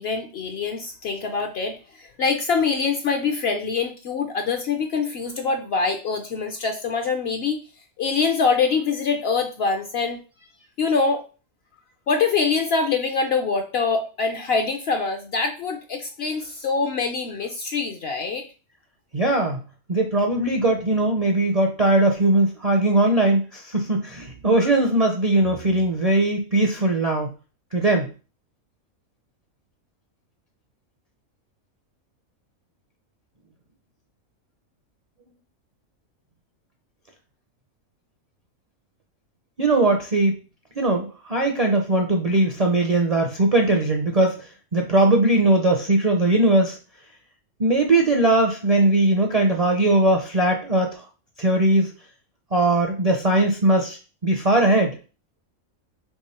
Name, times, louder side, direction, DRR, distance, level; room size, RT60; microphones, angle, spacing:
voice 1, 0.0-7.6 8.0-10.2 10.8-11.2 12.1-18.4, left 4 dB, 60° left, 5 dB, 0.7 m, -24 dB
voice 2, 19.1-19.6 19.9-27.3 27.7-28.1 39.6-40.4 40.8-44.4 44.7-46.8 47.6-51.0 51.4-51.9 52.5-55.0, right 2 dB, 45° right, 2 dB, 0.5 m, -20 dB
3.6 x 3.4 x 4.2 m, 0.34 s
omnidirectional pair, 1.5 m